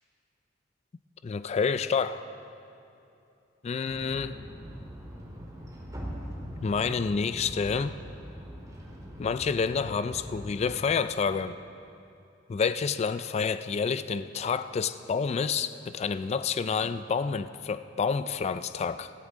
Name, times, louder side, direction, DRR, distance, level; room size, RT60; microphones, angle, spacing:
voice 1, 1.2-2.3 3.6-4.4 6.6-8.0 9.2-11.6 12.5-19.1, left 5 dB, 35° left, 12 dB, 0.3 m, -28 dB
sound 1, 3.9-10.8, equal, 20° right, 2.2 m, -42 dB
15.5 x 14.5 x 3.8 m, 2.8 s
head